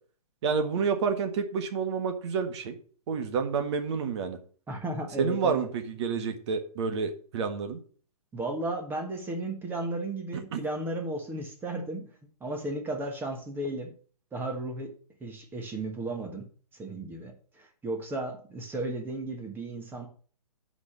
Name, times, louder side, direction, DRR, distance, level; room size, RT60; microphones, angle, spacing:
voice 1, 0.4-2.8 3.1-4.4 5.2-7.8 10.5-10.6, right 5 dB, 45° right, 6 dB, 1.6 m, -29 dB
voice 2, 4.7-5.7 8.3-12.1 12.4-13.9 14.3-14.9 15.2-16.5 16.7-20.1, right 2 dB, 10° right, 3 dB, 1.5 m, -34 dB
8.1 x 5.1 x 6.5 m, 0.42 s
hypercardioid pair, 145°, 19 cm